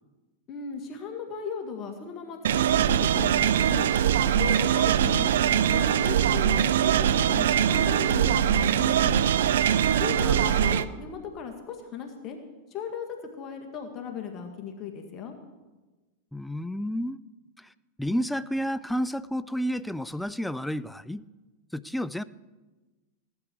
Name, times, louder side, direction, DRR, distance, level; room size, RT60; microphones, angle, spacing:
voice 1, 0.5-3.9 4.2-9.3 9.8-12.4 12.7-15.3, left 6 dB, 40° left, 3 dB, 1.9 m, -37 dB
sound 1, 2.4-10.8, right 9 dB, 80° right, 0.5 m, -22 dB
voice 2, 10.2-10.5 16.3-17.2 17.6-17.7 18.0-21.2 21.7-22.2, equal, 5° left, 16 dB, 0.4 m, -31 dB
17.0 x 11.5 x 4.6 m, 1.2 s
hypercardioid pair, 115°, 0 cm